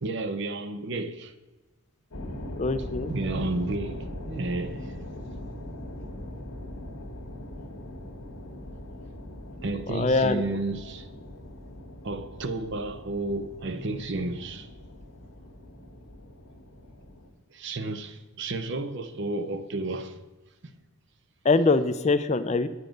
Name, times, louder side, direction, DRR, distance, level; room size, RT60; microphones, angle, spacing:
voice 1, 0.0-1.3 3.1-5.2 9.6-11.1 12.0-14.7 17.5-20.2, right 2 dB, 55° right, 0.6 m, -32 dB
sound 1, 2.1-17.3, left 1 dB, 85° left, 1.5 m, -41 dB
voice 2, 2.6-3.1 9.9-10.4 21.4-22.7, left 3 dB, 30° left, 0.4 m, -23 dB
8.9 x 8.3 x 5.2 m
head